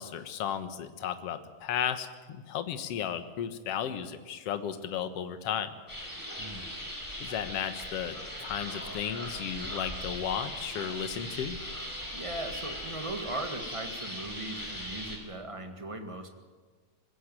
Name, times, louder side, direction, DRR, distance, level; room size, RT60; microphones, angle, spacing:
voice 1, 0.0-5.7 7.2-11.6, left 9 dB, 55° left, 10 dB, 2.0 m, -34 dB
sound 1, 5.9-15.2, equal, 5° left, 4.2 m, -39 dB
voice 2, 6.4-6.7 12.1-16.3, right 2 dB, 20° right, 6 dB, 0.8 m, -38 dB
21.5 x 16.5 x 9.1 m, 1.5 s
omnidirectional pair, 3.8 m